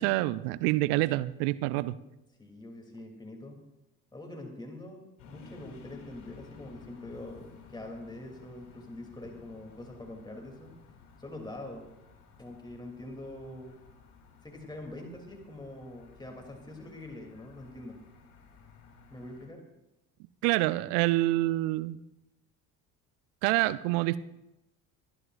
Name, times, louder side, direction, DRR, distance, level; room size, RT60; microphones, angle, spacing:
voice 1, 0.0-2.0 20.4-22.0 23.4-24.2, right 18 dB, 60° right, 16 dB, 0.7 m, -27 dB
voice 2, 2.4-3.6 4.1-10.7 11.2-11.9 12.4-13.8 14.4-18.0 19.1-19.6, left 1 dB, 10° left, 2 dB, 2.9 m, -44 dB
sound 1, 5.2-19.5, left 5 dB, 60° left, 3.3 m, -54 dB
25.5 x 11.0 x 2.5 m, 0.92 s
figure-of-eight pair, 55°, 47 cm